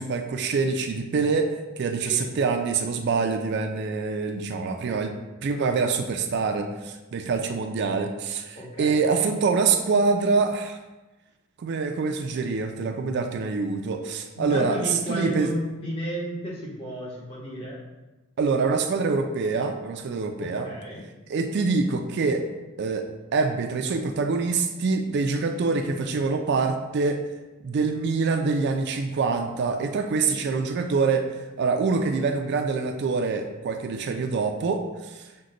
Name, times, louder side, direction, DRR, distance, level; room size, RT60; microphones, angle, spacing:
voice 1, 0.0-5.1 5.4-10.8 11.6-14.8 15.1-15.5 18.4-20.7 21.3-22.4 22.8-27.2 27.6-31.3 31.6-35.2, right 4 dB, 55° right, 6 dB, 0.4 m, -25 dB
voice 2, 8.5-9.0 14.3-17.8 20.4-21.0 30.2-30.4, equal, 25° left, -5 dB, 1.2 m, -33 dB
6.3 x 2.2 x 3.8 m, 1.1 s
head